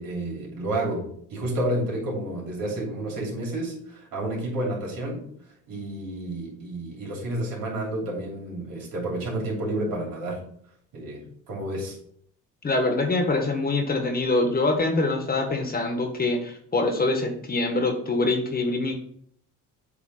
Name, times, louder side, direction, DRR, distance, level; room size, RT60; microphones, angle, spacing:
voice 1, 0.0-5.2 5.7-10.4 10.9-12.0, right 1 dB, 75° right, -2 dB, 3.1 m, -30 dB
voice 2, 12.6-18.9, left 2 dB, 25° left, 3 dB, 1.3 m, -24 dB
8.2 x 3.4 x 4.9 m, 0.64 s
cardioid pair, 120°, 34 cm